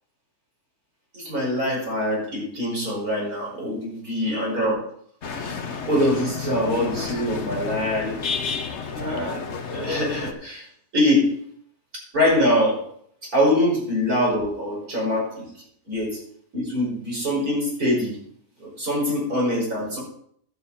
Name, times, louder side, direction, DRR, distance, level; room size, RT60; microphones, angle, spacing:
voice 1, 1.1-4.8 5.4-5.5 5.9-8.3 8.9-9.4 9.7-10.6 10.9-11.3 12.1-12.8 13.3-15.5 15.9-16.2 16.5-18.2 18.6-20.0, left 1 dB, 75° right, -3 dB, 5.9 m, -23 dB
sound 1, 5.2-10.3, left 5 dB, 50° left, 1.3 m, -31 dB
11.5 x 8.7 x 4.2 m, 0.65 s
omnidirectional pair, 1.6 m